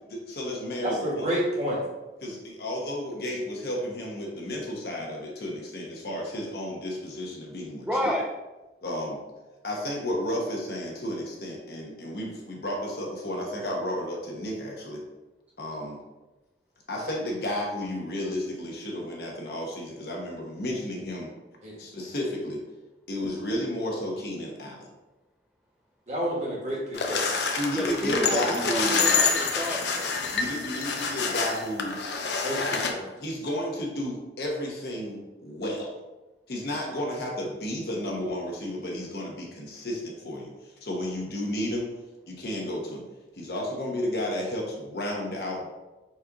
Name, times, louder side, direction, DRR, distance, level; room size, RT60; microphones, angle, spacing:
voice 1, 0.1-1.3 2.2-8.1 8.8-9.2 9.6-15.0 15.6-16.0 16.9-21.3 21.8-22.6 23.1-24.9 27.6-29.0 30.3-32.0 33.2-35.9 36.5-41.9 42.3-43.0 43.3-45.7, left 1 dB, 60° left, -1 dB, 1.0 m, -32 dB
voice 2, 0.8-1.8 21.6-21.8 26.1-26.8 27.1-27.2 32.4-33.0, equal, 40° right, -4 dB, 1.3 m, -29 dB
voice 3, 7.8-8.3 27.7-30.1, equal, 10° right, -3 dB, 0.4 m, -30 dB
sound 1, 26.9-32.9, left 5 dB, 75° left, 0.6 m, -27 dB
4.3 x 2.5 x 4.7 m, 1.1 s
head